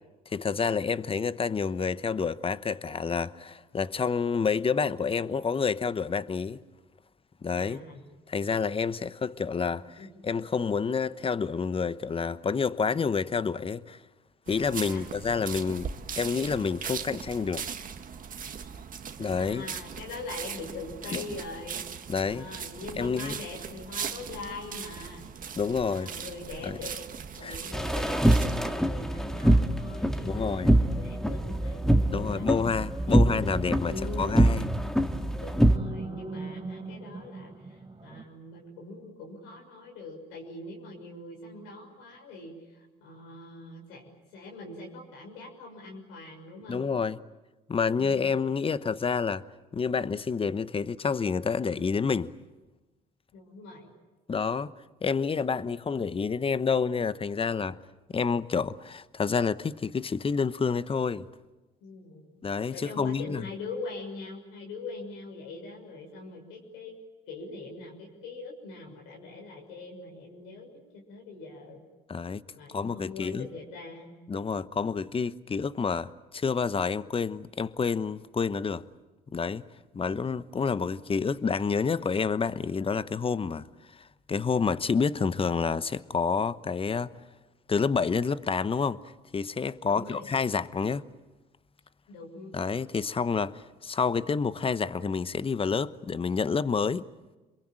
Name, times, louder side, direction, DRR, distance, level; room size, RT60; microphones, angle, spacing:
voice 1, 0.3-6.6 7.4-7.8 8.3-14.0 14.5-15.9 16.2-17.7 19.2-19.6 21.1-21.2 22.1-22.5 23.0-23.4 25.6-26.1 26.6-26.8 27.4-27.6 30.2-30.8 32.1-34.7 46.7-47.2 47.7-49.4 49.7-52.3 54.3-54.7 55.0-57.8 58.1-61.3 62.4-63.4 72.1-72.4 72.7-73.5 74.3-78.8 79.3-79.6 79.9-83.6 84.0-87.1 87.7-89.0 89.3-91.0 92.5-97.0, left 5 dB, 30° left, 1.0 m, -28 dB
voice 2, 7.5-8.0 10.0-10.1 14.8-15.5 19.4-21.8 22.2-25.3 25.9-26.9 27.4-32.5 33.0-33.3 33.6-34.3 34.6-44.0 44.3-46.8 53.3-53.9 61.8-62.3 62.7-67.0 67.3-71.8 72.5-74.1 89.8-90.3 92.1-92.5, left 3 dB, 80° left, 6.3 m, -42 dB
sound 1, 14.5-28.6, right 7 dB, 45° right, 1.9 m, -39 dB
sound 2, 27.7-35.8, right 1 dB, 5° left, 1.8 m, -24 dB
sound 3, 30.4-38.2, right 3 dB, 25° right, 4.1 m, -43 dB
27.5 x 22.5 x 9.0 m
supercardioid pair, 65°, 19 cm